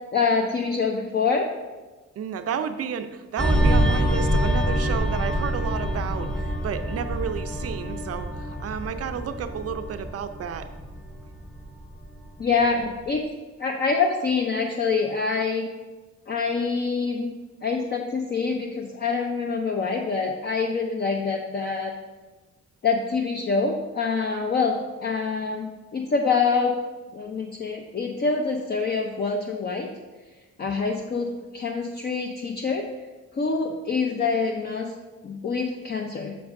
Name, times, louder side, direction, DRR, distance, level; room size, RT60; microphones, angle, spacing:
voice 1, 0.1-1.5 12.4-13.2 13.6-15.7 16.3-17.3 17.6-21.9 22.8-26.8 27.1-30.0 30.6-32.9 33.3-34.9 35.2-36.4, left 4 dB, 35° left, 2 dB, 0.6 m, -25 dB
voice 2, 2.2-10.7, right 7 dB, 55° right, 9 dB, 0.5 m, -31 dB
sound 1, 3.4-12.4 12.8-13.0, equal, ahead, 0.7 m, -26 dB
7.7 x 6.3 x 2.6 m, 1.2 s
cardioid pair, 90°, 30 cm